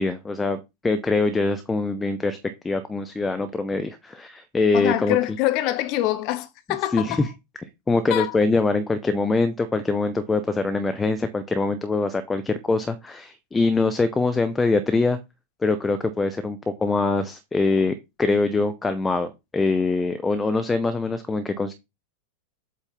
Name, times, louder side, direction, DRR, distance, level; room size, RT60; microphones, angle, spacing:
voice 1, 0.0-2.4 2.6-5.2 6.9-7.3 7.9-15.2 15.6-21.7, left 3 dB, 10° left, 0.6 m, -23 dB
voice 2, 4.7-7.2 8.1-8.3, left 15 dB, 45° left, 0.9 m, -25 dB
8.0 x 2.7 x 5.4 m
figure-of-eight pair, 90°, 0 cm